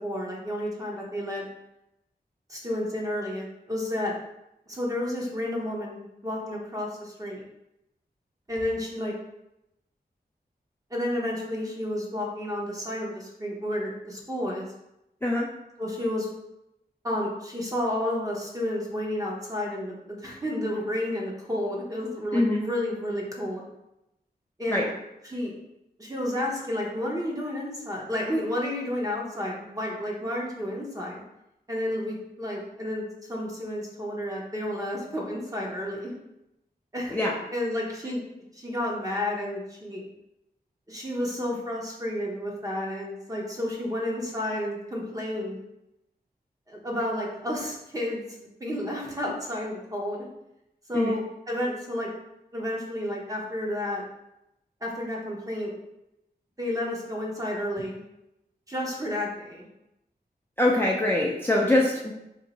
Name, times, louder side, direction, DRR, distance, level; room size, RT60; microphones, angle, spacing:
voice 1, 0.0-1.5 2.5-4.1 4.7-7.4 8.5-9.1 10.9-14.7 15.8-16.3 17.0-23.7 24.6-24.9 25.2-25.5 26.0-31.2 31.7-36.1 36.9-37.3 37.5-38.2 38.5-40.0 40.9-45.6 46.7-50.3 50.9-52.1 52.5-54.0 54.8-55.8 56.6-58.0 58.7-59.7, left 1 dB, 20° right, -2 dB, 0.9 m, -31 dB
voice 2, 22.3-22.6 24.7-24.8 37.1-37.3 50.9-51.2 60.6-62.1, left 1 dB, 15° left, -4 dB, 0.4 m, -23 dB
2.7 x 2.6 x 4.0 m, 0.87 s
wide cardioid pair, 90°, 17 cm